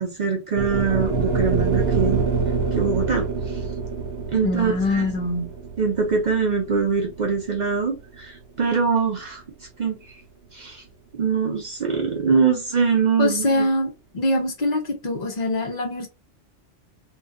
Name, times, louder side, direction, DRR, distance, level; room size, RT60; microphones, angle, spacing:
voice 1, 0.0-2.3 2.7-3.6 4.3-5.1 5.8-9.4 9.8-10.2 10.5-10.8 11.1-13.7, right 5 dB, 55° right, 0.5 m, -23 dB
sound 1, 0.5-8.8, right 4 dB, 70° right, 0.9 m, -26 dB
voice 2, 4.4-5.5 13.2-16.1, left 1 dB, 50° left, 0.6 m, -24 dB
2.6 x 2.2 x 2.4 m
omnidirectional pair, 1.3 m